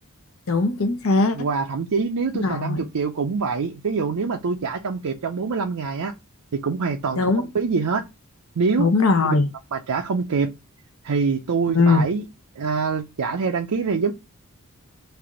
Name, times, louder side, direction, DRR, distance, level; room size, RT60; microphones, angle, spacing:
voice 1, 0.5-1.4 2.3-2.9 7.2-7.5 8.8-9.5 11.7-12.0, left 3 dB, 70° left, 0.8 m, -20 dB
voice 2, 1.4-6.1 6.5-7.2 7.5-8.0 8.6-8.9 9.3-9.4 9.7-10.5 11.0-12.2 12.6-14.1, right 5 dB, 85° right, 0.5 m, -24 dB
3.4 x 2.5 x 3.6 m
head